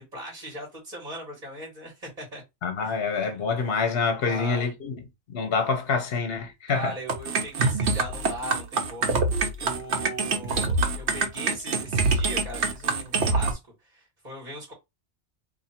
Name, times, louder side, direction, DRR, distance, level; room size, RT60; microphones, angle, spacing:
voice 1, 0.0-2.4 2.8-3.0 4.2-4.7 6.7-9.2 9.6-13.6 13.8-14.7, right 1 dB, 40° right, 1.6 m, -39 dB
voice 2, 2.6-5.0 5.3-6.9, left 5 dB, 60° left, 1.1 m, -26 dB
sound 1, 7.1-13.5, right 3 dB, 80° right, 1.1 m, -25 dB
2.8 x 2.7 x 4.2 m
omnidirectional pair, 1.1 m